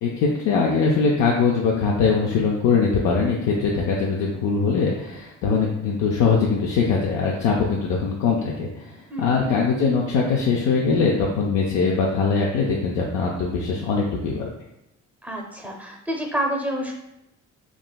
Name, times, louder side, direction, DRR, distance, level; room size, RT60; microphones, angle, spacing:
voice 1, 0.0-8.9 9.2-14.5, left 5 dB, 80° left, -2 dB, 0.5 m, -22 dB
voice 2, 9.1-9.4 15.2-16.9, equal, 5° right, 0 dB, 0.6 m, -28 dB
3.6 x 2.0 x 2.2 m, 0.87 s
cardioid pair, 90°, 30 cm